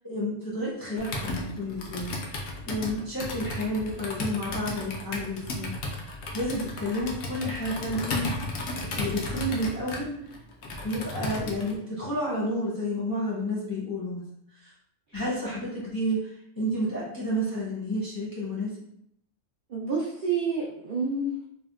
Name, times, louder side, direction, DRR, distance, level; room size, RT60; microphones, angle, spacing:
voice 1, 0.0-2.1 2.6-5.7 6.3-8.3 9.0-10.1 10.8-14.2 15.1-16.2 16.6-18.7, equal, 20° left, -8 dB, 0.6 m, -30 dB
Computer keyboard, 1.0-11.8, left 1 dB, 80° left, 0.9 m, -34 dB
voice 2, 19.7-21.4, right 4 dB, 60° right, -5 dB, 0.5 m, -29 dB
3.4 x 2.2 x 2.3 m, 0.75 s
omnidirectional pair, 1.3 m